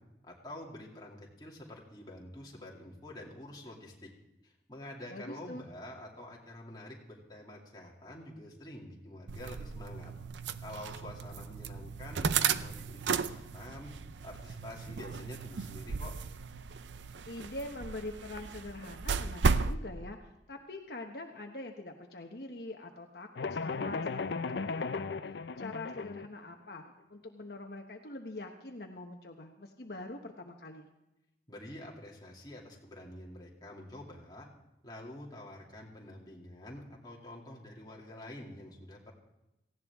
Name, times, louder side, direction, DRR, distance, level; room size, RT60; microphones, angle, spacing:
voice 1, 0.2-4.1 4.4-10.1 10.6-13.9 14.2-16.1 31.5-34.5 34.8-39.1, left 1 dB, 25° left, -3 dB, 2.5 m, -47 dB
voice 2, 5.1-5.6 17.3-24.2 24.5-26.8 27.1-30.9, left 2 dB, 65° left, 2 dB, 1.1 m, -44 dB
sound 1, 9.3-19.8, right 5 dB, 90° right, 0.5 m, -35 dB
sound 2, 23.4-26.3, left 4 dB, 80° left, 0.5 m, -36 dB
18.0 x 16.0 x 3.6 m, 0.94 s
head